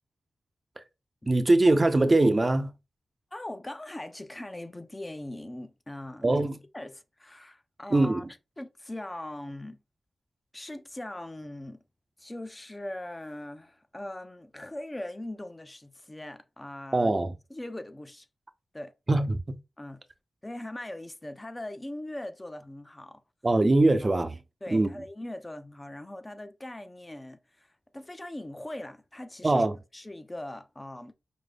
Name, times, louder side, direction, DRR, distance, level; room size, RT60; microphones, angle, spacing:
voice 1, 1.3-2.7 6.2-6.6 7.9-8.2 16.9-17.3 19.1-19.6 23.4-24.4 24.7-24.9 29.4-29.8, right 2 dB, 35° right, 0.5 m, -22 dB
voice 2, 3.3-6.3 6.7-8.3 8.6-9.8 10.5-11.8 12.2-17.1 17.5-18.3 18.7-18.9 19.8-20.0 20.4-23.2 24.0-24.2 24.6-29.7 29.9-31.1, left 1 dB, 20° left, 0.5 m, -40 dB
5.1 x 2.0 x 3.3 m
cardioid pair, 65°, 0 cm